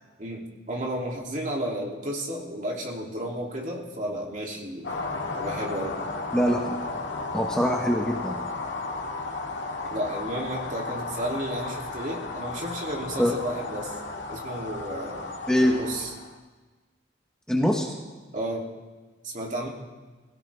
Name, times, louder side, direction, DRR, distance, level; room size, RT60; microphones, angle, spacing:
voice 1, 0.2-4.9 5.3-6.0 9.9-14.0 14.3-15.3 15.6-16.1 18.3-18.7 19.2-19.7, right 1 dB, 45° right, -2 dB, 2.9 m, -32 dB
sound 1, 4.8-16.4, left 3 dB, 85° left, 1.9 m, -34 dB
voice 2, 6.3-6.7 7.3-8.5 13.2-13.3 15.5-15.8 17.5-17.9, equal, 5° left, 0 dB, 1.2 m, -23 dB
23.0 x 16.5 x 3.5 m, 1.3 s
head